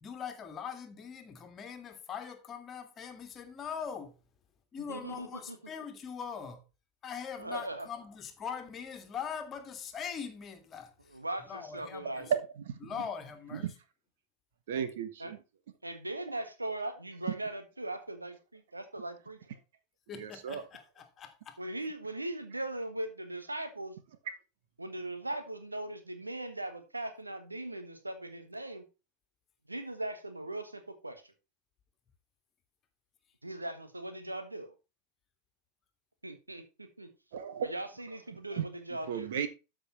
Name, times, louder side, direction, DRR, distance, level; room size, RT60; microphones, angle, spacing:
voice 1, 0.0-4.2 4.7-6.6 7.0-11.2 11.5-12.3 12.8-13.7 20.1-21.6, left 7 dB, 25° left, 1.8 m, -42 dB
voice 2, 4.9-5.6 7.4-7.9 11.1-12.3 15.2-15.3 15.8-19.4 21.6-24.0 24.8-28.8 29.7-31.3 33.4-34.7 36.2-37.1 37.6-39.3, right 1 dB, 85° right, 1.5 m, -39 dB
voice 3, 12.3-12.8 13.6-13.7 14.7-15.4 20.2-20.6 37.3-37.7 38.6-38.7 39.1-39.5, right 8 dB, 55° right, 1.3 m, -33 dB
13.0 x 5.2 x 4.3 m
figure-of-eight pair, 90°, 0 cm